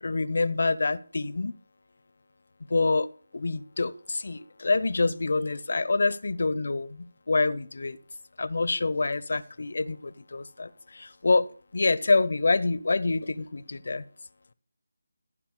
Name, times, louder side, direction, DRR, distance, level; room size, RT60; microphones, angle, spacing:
voice 1, 0.0-1.6 2.7-3.1 3.3-8.0 8.4-14.0, left 3 dB, 55° left, 0.7 m, -26 dB
14.5 x 5.6 x 6.6 m
figure-of-eight pair, 160°, 0 cm